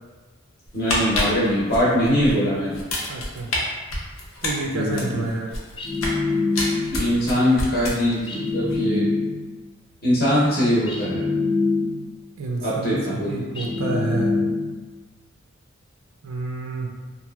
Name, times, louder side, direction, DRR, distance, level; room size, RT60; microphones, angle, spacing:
sound 1, 0.7-2.3 2.7-3.6 3.9-6.2 6.5-8.3 8.6-8.8, left 2 dB, 85° left, 0.6 m, -28 dB
voice 1, 0.7-2.8 4.7-5.3 6.9-9.1 10.0-11.2 12.6-13.5, equal, 45° left, -8 dB, 0.7 m, -22 dB
voice 2, 3.1-3.5 4.4-5.5 12.4-14.4 16.2-16.9, right 2 dB, 80° right, 0 dB, 0.4 m, -28 dB
sound 2, 5.8-7.1 8.3-9.6 10.9-12.2 13.6-14.9, left 3 dB, 25° left, 0.3 m, -25 dB
2.7 x 2.5 x 2.2 m, 1.3 s
head